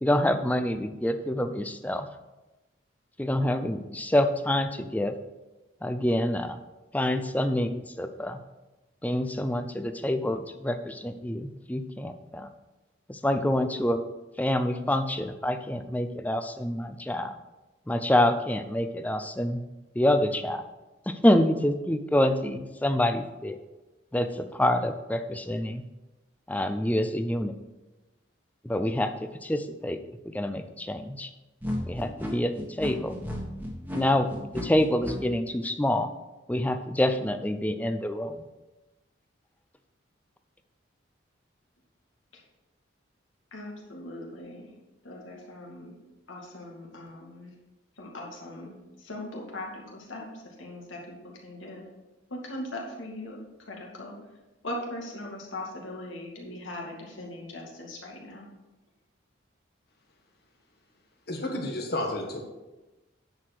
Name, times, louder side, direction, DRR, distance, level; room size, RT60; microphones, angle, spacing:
voice 1, 0.0-2.1 3.2-5.1 5.8-6.6 6.9-8.4 9.0-12.5 13.1-14.0 14.4-17.3 17.9-19.6 20.0-20.6 21.1-23.6 24.1-25.8 26.5-27.5 28.6-29.1 29.4-30.0 30.3-31.3 31.9-32.5 32.8-33.1 33.9-36.1 36.5-38.4, left 1 dB, 10° left, 9 dB, 0.5 m, -26 dB
sound 1, 31.6-35.2, left 1 dB, 10° right, 1.3 m, -33 dB
voice 2, 43.5-44.7 45.0-45.9 46.3-47.5 48.0-50.3 50.6-51.2 51.4-51.9 52.3-53.4 53.7-54.2 54.6-58.5, left 1 dB, 85° left, -1 dB, 2.3 m, -39 dB
voice 3, 61.3-62.4, left 1 dB, 50° left, 2 dB, 1.6 m, -31 dB
9.4 x 4.9 x 6.2 m, 1.1 s
head